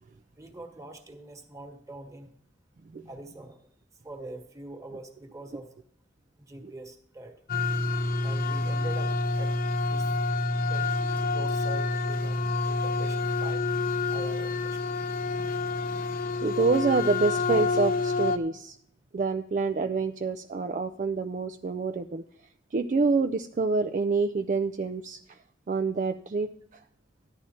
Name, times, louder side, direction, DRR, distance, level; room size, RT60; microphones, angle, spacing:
voice 1, 0.4-2.3 3.0-3.6 4.0-5.7 6.5-7.4 8.2-9.5 9.8-10.1 10.7-12.4 12.7-13.6 14.1-14.9, right 1 dB, 15° right, 4 dB, 1.4 m, -44 dB
sound 1, 7.5-18.4, left 3 dB, 50° left, 0.6 m, -28 dB
voice 2, 16.4-18.8 19.1-22.2 22.7-25.2 25.7-26.8, right 4 dB, 40° right, 6 dB, 0.4 m, -27 dB
13.0 x 10.5 x 4.3 m, 0.65 s
head